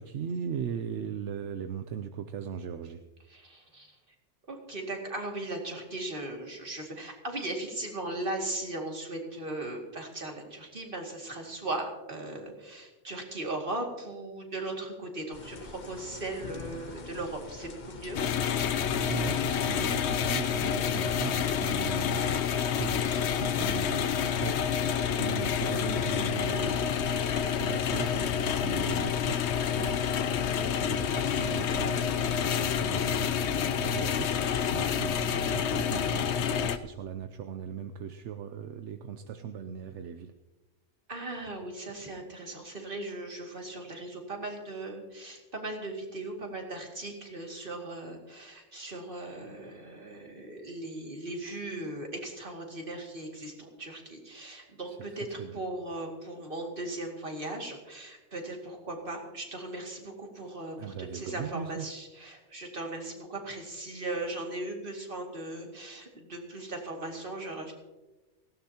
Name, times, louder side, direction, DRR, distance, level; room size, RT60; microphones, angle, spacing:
voice 1, 0.0-3.0 18.9-22.5 22.7-24.1 24.4-24.6 25.1-40.3 54.9-55.0 55.4-55.6 60.8-61.9, right 8 dB, 80° right, 8 dB, 1.0 m, -38 dB
voice 2, 3.3-3.9 4.5-18.2 34.4-34.6 41.1-67.7, right 2 dB, 50° right, 1 dB, 2.5 m, -38 dB
sound 1, 15.3-32.1, left 4 dB, 45° left, 1.0 m, -47 dB
sound 2, 18.1-36.8, left 8 dB, 75° left, 0.9 m, -28 dB
18.5 x 16.5 x 2.9 m, 1.2 s
omnidirectional pair, 1.2 m